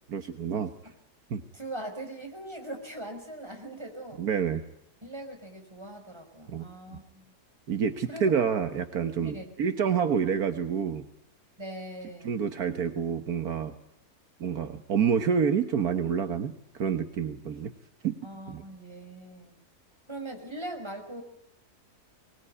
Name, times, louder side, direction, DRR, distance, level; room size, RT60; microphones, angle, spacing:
voice 1, 0.1-0.7 1.3-1.4 4.2-4.6 6.5-6.6 6.9-7.0 7.7-11.0 12.2-13.7 14.4-17.7 18.0-18.2 18.5-18.6, right 7 dB, 70° right, 8 dB, 1.7 m, -28 dB
voice 2, 1.5-4.2 5.0-7.3 8.1-8.3 9.2-9.5 11.6-12.4 18.2-19.6 20.1-21.2, right 1 dB, 15° right, 4 dB, 5.1 m, -41 dB
23.5 x 20.5 x 9.8 m, 0.83 s
omnidirectional pair, 1.7 m